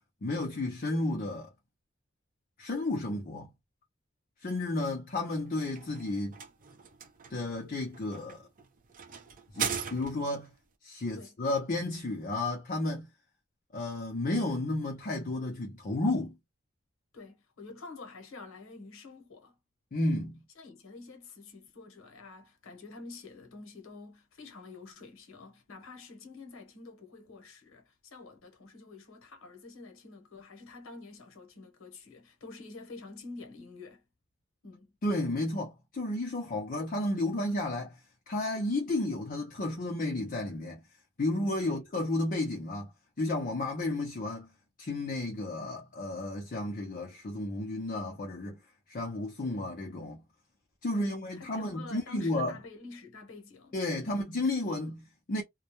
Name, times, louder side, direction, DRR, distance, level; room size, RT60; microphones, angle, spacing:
voice 1, 0.2-1.5 2.6-3.5 4.4-6.3 7.3-8.4 9.5-10.5 10.8-13.1 13.7-16.4 19.9-20.4 35.0-38.0 38.3-40.8 41.2-42.9 43.2-44.5 44.8-48.6 48.9-50.2 50.8-52.6 53.7-55.4, left 2 dB, 45° left, 0.5 m, -32 dB
sound 1, 5.3-10.5, right 6 dB, 45° right, 0.5 m, -39 dB
voice 2, 17.1-19.6 20.1-34.0 34.6-35.0 41.6-41.8 51.0-54.3, left 3 dB, 80° left, 0.9 m, -48 dB
2.2 x 2.0 x 2.8 m
head